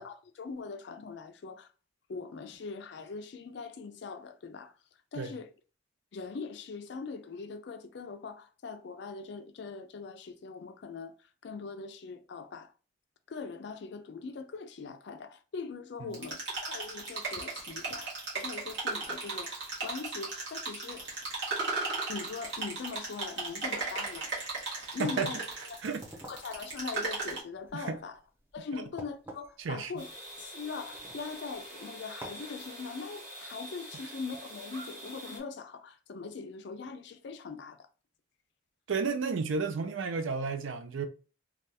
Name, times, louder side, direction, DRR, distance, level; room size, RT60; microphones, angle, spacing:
voice 1, 0.0-1.7 2.1-4.7 5.1-5.5 6.1-12.7 13.3-21.1 22.1-24.3 24.9-25.4 25.7-25.8 26.3-28.2 28.5-30.1 30.4-37.8, left 4 dB, 60° left, 0.4 m, -41 dB
sound 1, 16.1-27.4, right 3 dB, 60° right, 1.4 m, -36 dB
voice 2, 25.0-25.3 25.8-26.0 27.7-28.0 28.7-28.8 29.6-29.9 38.9-41.1, right 4 dB, 80° right, 0.4 m, -32 dB
sound 2, 25.8-31.7 32.2-32.6, right 1 dB, 10° right, 0.5 m, -51 dB
sound 3, 30.0-35.4, equal, 40° right, 1.2 m, -46 dB
3.3 x 2.3 x 2.7 m
head